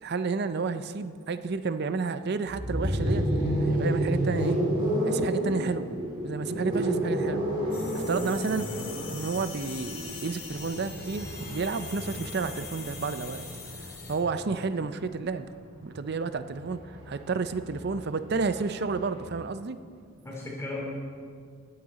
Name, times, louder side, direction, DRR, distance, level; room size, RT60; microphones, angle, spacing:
voice 1, 0.0-3.3 3.6-4.6 5.0-5.9 6.2-7.5 7.9-8.7 9.1-13.5 14.1-15.5 15.8-19.8, right 4 dB, 50° right, 12 dB, 0.5 m, -31 dB
sound 1, 2.5-14.4 15.7-19.3, equal, 25° right, 2.9 m, -31 dB
sound 2, 7.7-14.2, left 5 dB, 90° left, 2.2 m, -42 dB
voice 2, 20.2-20.8, left 2 dB, 15° left, -4 dB, 3.0 m, -37 dB
18.0 x 8.7 x 4.1 m, 2.2 s
head